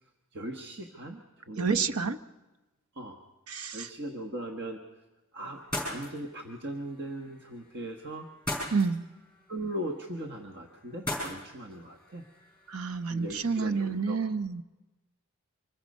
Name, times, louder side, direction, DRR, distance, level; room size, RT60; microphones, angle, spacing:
voice 1, 0.3-2.1 2.9-3.2 3.7-5.0 5.3-8.3 9.5-12.3 13.1-14.2, right 1 dB, 50° right, 3 dB, 1.3 m, -39 dB
voice 2, 1.6-2.2 3.5-3.9 8.7-9.0 12.7-14.6, right 5 dB, 75° right, 11 dB, 0.8 m, -29 dB
sound 1, 5.5-14.0, left 1 dB, 5° left, 7.3 m, -41 dB
25.0 x 21.0 x 5.4 m, 1.1 s
head